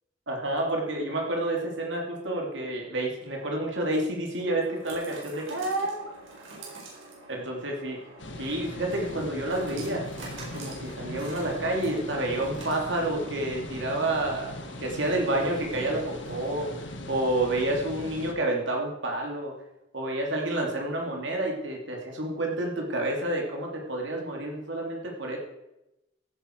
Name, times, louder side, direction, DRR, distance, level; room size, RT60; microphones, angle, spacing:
voice 1, 0.3-6.1 6.6-6.8 7.3-8.0 8.4-10.0 10.5-16.7 17.1-19.5 19.9-25.4, right 1 dB, 65° right, 0 dB, 2.8 m, -29 dB
sound 1, 3.0-17.0, right 2 dB, 90° right, 4.8 m, -47 dB
sound 2, 8.2-18.3, left 1 dB, 65° left, 1.6 m, -40 dB
15.5 x 9.8 x 4.6 m, 0.92 s
head